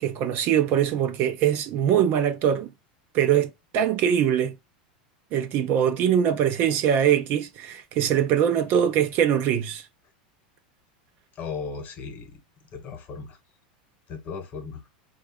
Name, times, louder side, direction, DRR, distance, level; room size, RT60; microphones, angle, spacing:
voice 1, 0.0-2.7 3.1-4.6 5.3-9.8, right 9 dB, 45° right, 0.6 m, -22 dB
voice 2, 11.4-12.4 12.7-13.4 14.1-14.8, left 5 dB, 35° left, 1.1 m, -36 dB
4.0 x 2.4 x 3.5 m
supercardioid pair, 125°, 5 cm